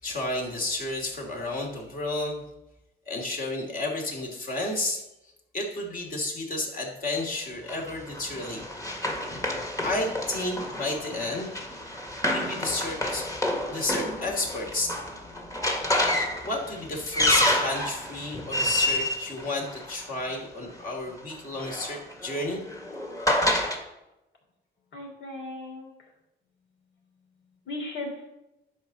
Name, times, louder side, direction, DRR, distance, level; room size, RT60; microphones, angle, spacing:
voice 1, 0.0-2.4 3.1-5.0 5.5-8.7 9.8-11.8 12.3-13.3 13.7-15.0 16.4-22.6, left 2 dB, 45° left, 0 dB, 2.9 m, -31 dB
Run, 7.7-20.3 21.3-23.8, left 1 dB, 15° left, 1.8 m, -29 dB
voice 2, 24.9-26.1 27.4-28.3, left 2 dB, 65° left, 0 dB, 3.2 m, -37 dB
10.5 x 4.4 x 6.8 m, 0.94 s
cardioid pair, 90°, 20 cm